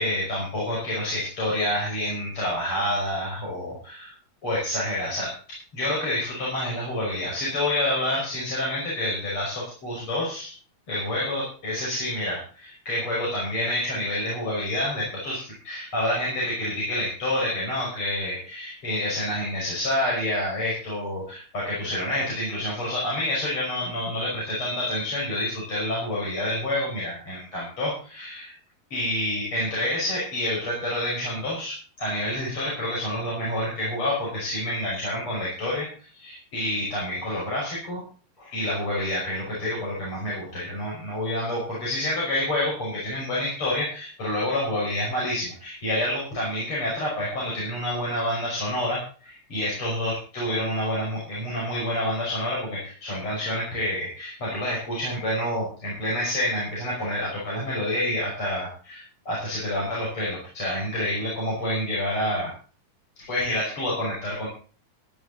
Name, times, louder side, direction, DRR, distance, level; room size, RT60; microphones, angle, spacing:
voice 1, 0.0-4.1 4.4-10.5 10.9-28.5 28.9-35.9 36.1-38.0 38.4-62.5 63.2-64.5, left 1 dB, 40° left, -5 dB, 6.3 m, -28 dB
15.5 x 11.0 x 4.1 m, 0.39 s
omnidirectional pair, 3.9 m